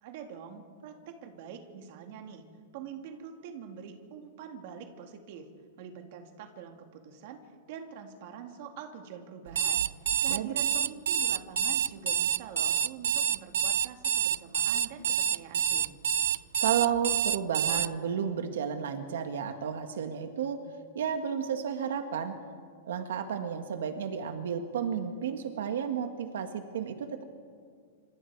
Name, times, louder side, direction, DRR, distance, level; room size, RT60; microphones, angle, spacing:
voice 1, 0.0-2.4 2.7-5.5 5.8-7.4 7.7-9.9 10.2-16.0, right 7 dB, 40° right, 5 dB, 2.1 m, -45 dB
Alarm, 9.5-17.9, right 10 dB, 90° right, 0.5 m, -27 dB
voice 2, 16.6-20.6 20.9-22.3 22.9-27.2, right 8 dB, 70° right, 7 dB, 1.7 m, -32 dB
27.5 x 26.0 x 4.8 m, 2.1 s
supercardioid pair, 180°, 0 cm